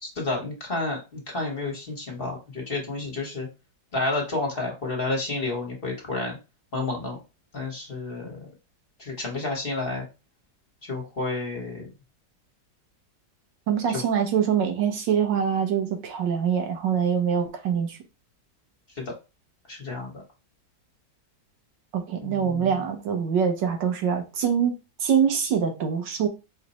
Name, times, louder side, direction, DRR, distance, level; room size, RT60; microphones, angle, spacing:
voice 1, 0.0-3.5 3.9-6.4 6.7-7.2 7.5-8.5 9.0-10.0 10.9-11.9 19.0-19.1 19.7-20.2 22.2-22.7, left 2 dB, 35° left, 1.2 m, -30 dB
voice 2, 13.7-18.0 21.9-24.7 25.0-26.3, right 7 dB, 90° right, 1.6 m, -24 dB
4.8 x 2.2 x 4.1 m
omnidirectional pair, 1.9 m